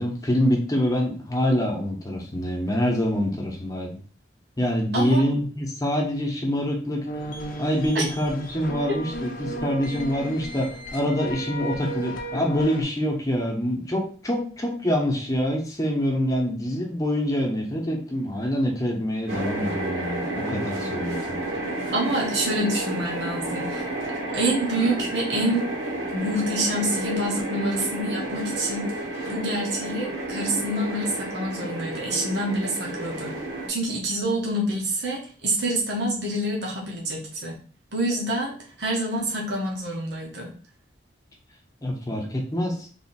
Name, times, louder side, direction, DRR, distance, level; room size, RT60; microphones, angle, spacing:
voice 1, 0.0-4.0 4.6-7.1 7.6-21.5 41.8-42.8, equal, 20° left, -1 dB, 0.9 m, -25 dB
sound 1, 7.1-12.8, right 1 dB, 45° left, 0.6 m, -34 dB
sound 2, 19.3-33.7, right 2 dB, 90° right, 2.0 m, -31 dB
voice 2, 21.9-23.8 24.3-25.7 26.1-28.9 29.3-33.4 33.7-37.6 37.9-40.5, right 1 dB, 65° right, -3 dB, 1.1 m, -27 dB
3.5 x 2.8 x 4.2 m, 0.42 s
head